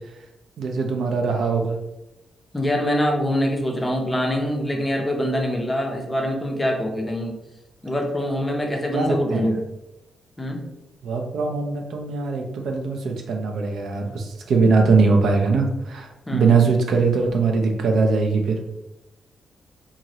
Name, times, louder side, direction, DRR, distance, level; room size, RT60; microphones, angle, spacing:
voice 1, 0.6-1.8 8.9-9.6 11.0-18.6, right 4 dB, 75° right, 3 dB, 0.5 m, -21 dB
voice 2, 2.5-7.4 7.8-9.6 10.4-10.6 16.3-16.5, equal, 15° left, 1 dB, 0.5 m, -24 dB
2.9 x 2.5 x 2.8 m, 0.91 s
wide cardioid pair, 145°, 0 cm